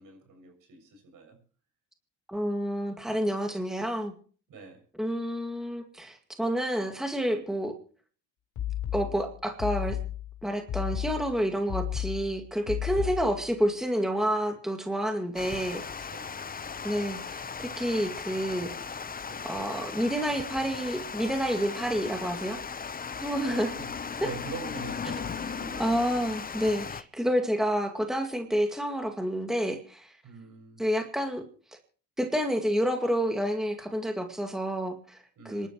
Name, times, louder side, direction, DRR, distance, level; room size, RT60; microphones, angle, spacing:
voice 1, 0.0-1.4 4.5-4.8 11.7-11.8 12.9-13.1 16.1-16.4 19.2-19.5 23.5-23.9 24.2-26.2 26.8-26.9 30.2-30.8 35.4-35.7, right 4 dB, 65° right, 7.2 m, -44 dB
voice 2, 2.3-4.1 5.0-7.7 8.9-10.0 10.4-15.8 16.8-17.4 17.8-19.0 19.5-22.6 23.2-23.7 25.8-30.1 30.8-31.4 32.2-35.2 35.5-35.7, equal, ahead, 2.1 m, -29 dB
sound 1, 8.6-13.5, left 12 dB, 65° left, 4.5 m, -33 dB
Water, 15.4-27.0, left 6 dB, 25° left, 0.8 m, -37 dB
26.0 x 12.0 x 3.1 m
cardioid pair, 95°, 34 cm